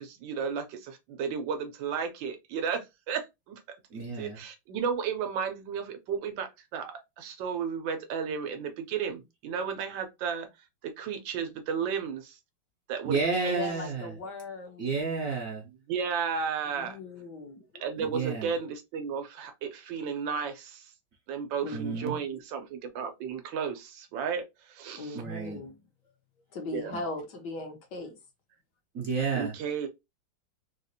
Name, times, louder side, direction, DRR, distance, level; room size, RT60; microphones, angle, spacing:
voice 1, 0.0-3.6 4.2-12.4 12.9-13.6 15.6-17.0 17.8-20.9 21.3-25.2 26.7-26.9 27.6-27.7 29.3-29.9, right 6 dB, 80° right, 1.4 m, -34 dB
voice 2, 3.9-4.4 13.1-14.1 14.8-15.6 18.1-18.5 21.7-22.1 25.1-25.6 28.9-29.5, right 4 dB, 60° right, 0.9 m, -30 dB
voice 3, 13.5-14.9 16.8-17.8 21.6-21.8 22.1-22.2 25.0-25.8 26.5-28.2, left 3 dB, 65° left, 1.5 m, -39 dB
4.0 x 2.5 x 2.6 m
omnidirectional pair, 2.1 m